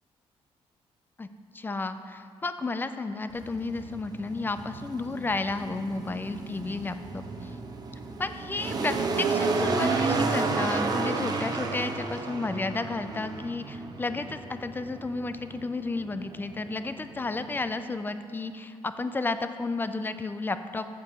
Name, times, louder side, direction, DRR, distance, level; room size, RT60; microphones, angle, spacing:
voice 1, 1.5-7.5 8.2-20.9, left 3 dB, 20° left, 10 dB, 0.4 m, -32 dB
sound 1, 3.3-17.8, right 3 dB, 40° right, 0.8 m, -32 dB
7.7 x 6.7 x 5.4 m, 2.4 s
cardioid pair, 120°, 11 cm